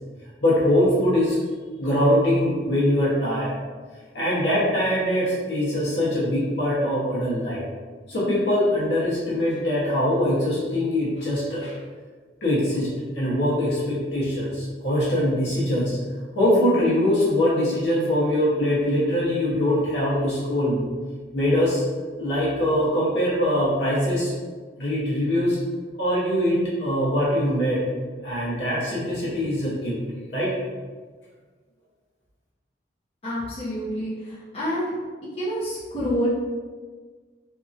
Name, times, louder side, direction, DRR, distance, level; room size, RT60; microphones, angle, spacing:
voice 1, 0.4-1.4 1.8-3.5 4.1-7.6 8.1-11.8 12.4-16.0 16.3-20.8 21.3-21.8 22.2-24.3 24.8-25.6 26.0-27.8 28.2-30.0 30.3-30.5, left 1 dB, 75° left, -8 dB, 1.0 m, -22 dB
voice 2, 33.2-34.1 34.5-34.9 35.4-36.3, equal, 30° left, -10 dB, 0.8 m, -27 dB
2.8 x 2.5 x 2.5 m, 1.5 s
head